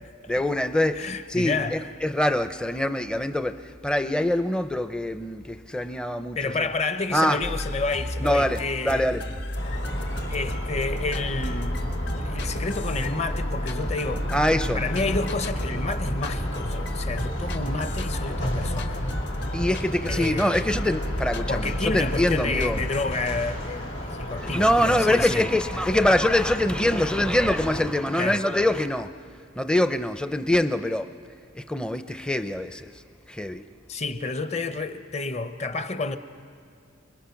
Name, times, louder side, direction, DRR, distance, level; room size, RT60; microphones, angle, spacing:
voice 1, 0.3-6.7 7.1-7.4 8.2-9.2 14.3-14.8 19.5-22.8 24.4-29.1 29.6-31.1 31.5-33.0 33.3-33.7, left 1 dB, 5° left, 9 dB, 0.5 m, -24 dB
voice 2, 0.9-1.9 6.4-9.2 10.3-11.8 12.1-14.3 14.7-19.0 19.4-19.5 20.1-20.8 21.5-23.9 24.2-25.5 28.1-28.4 33.9-36.2, left 3 dB, 30° left, 10 dB, 0.8 m, -30 dB
sound 1, 7.4-23.1, left 1 dB, 55° left, 1.3 m, -32 dB
sound 2, 9.5-27.8, equal, 80° left, 6.0 m, -33 dB
29.5 x 21.0 x 5.8 m, 2.3 s
head